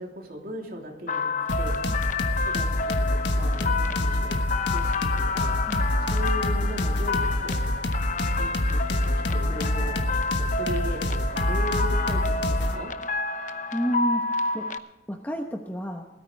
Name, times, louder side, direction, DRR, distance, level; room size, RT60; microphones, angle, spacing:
voice 1, 0.0-1.8 2.4-4.4 4.7-5.6 6.1-7.7 8.4-10.0 10.4-12.9, equal, 55° right, 0 dB, 3.2 m, -37 dB
sound 1, 1.1-14.8, left 4 dB, 45° left, 0.8 m, -29 dB
sound 2, 1.5-12.8, left 1 dB, 75° left, 1.4 m, -26 dB
voice 2, 13.7-14.7 15.1-16.1, equal, 10° left, 3 dB, 1.0 m, -30 dB
20.5 x 13.5 x 3.4 m, 1.1 s
head